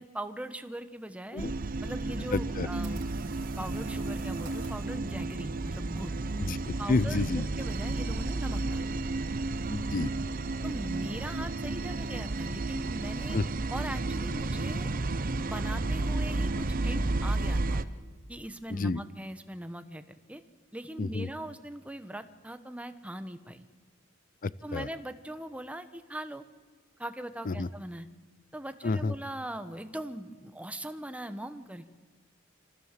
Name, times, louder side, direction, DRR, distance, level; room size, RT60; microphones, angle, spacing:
voice 1, 0.0-1.5 1.8-6.2 6.8-7.3 7.6-8.8 10.6-13.4 13.7-14.9 15.4-17.9 18.3-20.0 20.3-20.4 20.7-23.6 24.6-26.4 27.0-28.1 28.5-31.9, right 1 dB, 5° right, 9 dB, 1.0 m, -40 dB
sound 1, 1.4-17.8, right 2 dB, 45° right, 0.7 m, -32 dB
voice 2, 2.3-2.7 6.4-7.5 9.7-10.1 13.3-13.4 18.7-19.0 21.0-21.3 24.4-24.9 27.5-27.7 28.8-29.1, left 3 dB, 45° left, 19 dB, 0.5 m, -30 dB
sound 2, 2.4-4.9, right 5 dB, 65° right, 3.2 m, -50 dB
26.0 x 15.5 x 7.5 m, 1.4 s
head